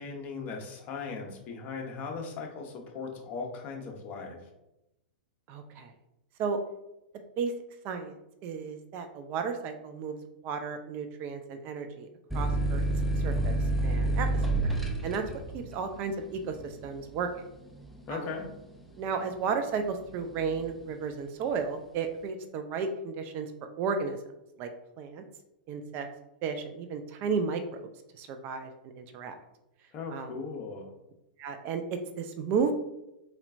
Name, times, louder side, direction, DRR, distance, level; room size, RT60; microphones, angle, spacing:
voice 1, 0.0-4.4 18.1-18.4 29.9-30.9, left 4 dB, 35° left, 1 dB, 1.0 m, -38 dB
voice 2, 5.5-5.9 6.4-6.6 7.4-7.5 7.8-8.2 8.4-10.1 10.4-12.1 12.3-12.8 13.2-14.4 15.0-15.2 15.5-17.3 18.1-18.3 19.0-23.5 23.8-24.2 24.6-24.7 25.0-25.2 25.7-26.1 26.4-27.9 28.1-29.3 30.1-30.3 31.4-32.7, right 5 dB, 40° right, 7 dB, 0.5 m, -33 dB
sound 1, 12.3-19.6 20.0-20.7, right 2 dB, ahead, 0.7 m, -30 dB
4.2 x 4.2 x 2.6 m, 0.90 s
figure-of-eight pair, 100°, 5 cm